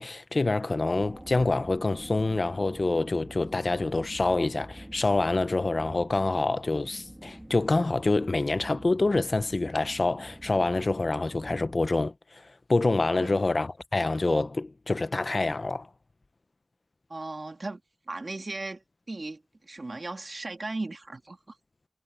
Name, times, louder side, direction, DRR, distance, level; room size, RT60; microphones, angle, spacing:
voice 1, 0.0-12.4 12.7-15.9, left 2 dB, 70° left, 0.8 m, -26 dB
sound 1, 1.0-11.9, equal, 15° right, 3.0 m, -46 dB
voice 2, 17.1-17.8 18.1-21.6, right 2 dB, 65° right, 2.8 m, -37 dB
wide cardioid pair, 55°, 0 cm